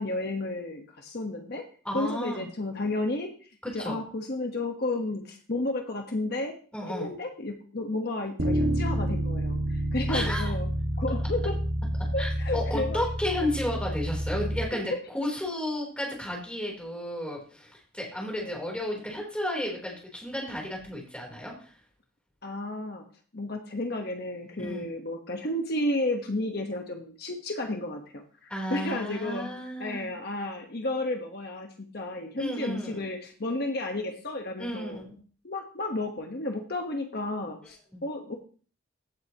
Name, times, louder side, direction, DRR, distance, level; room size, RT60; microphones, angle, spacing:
voice 1, 0.0-1.6 1.9-6.6 6.9-10.7 11.0-11.6 12.1-13.0 14.7-14.8 18.4-18.6 22.4-23.0 23.3-29.5 29.8-35.1 35.4-38.4, left 2 dB, 50° left, 3 dB, 1.2 m, -32 dB
voice 2, 1.9-2.5 3.6-4.0 6.7-7.1 10.1-10.5 12.2-21.7 24.6-24.8 28.5-30.1 32.4-33.0 34.6-35.2 37.9-38.0, left 1 dB, 5° left, -1 dB, 3.5 m, -33 dB
Bass guitar, 8.4-14.6, right 1 dB, 85° right, 1.7 m, -29 dB
16.0 x 7.7 x 3.0 m, 0.41 s
head